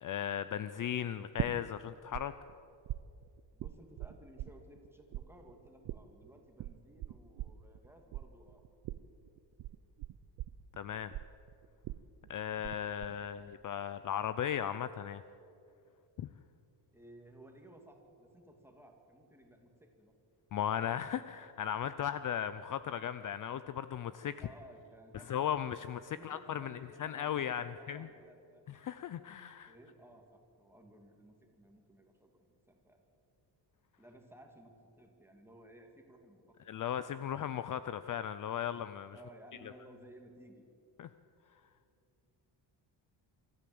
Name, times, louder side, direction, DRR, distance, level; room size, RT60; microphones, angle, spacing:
voice 1, 0.0-2.3 10.8-11.1 12.3-15.2 16.2-16.3 20.5-24.3 25.1-28.1 28.7-29.7 36.7-39.2 41.0-41.1, left 9 dB, 45° left, 13 dB, 0.5 m, -37 dB
sound 1, 1.4-2.2 2.5-4.9 5.1-12.7 13.0-13.5, right 14 dB, 60° right, 0.7 m, -41 dB
voice 2, 3.5-8.6 16.9-20.1 24.4-25.3 26.1-28.7 29.7-33.0 34.0-36.5 39.1-40.6, right 1 dB, 5° right, 3 dB, 2.3 m, -57 dB
25.0 x 13.5 x 7.8 m, 2.6 s
cardioid pair, 160°, 44 cm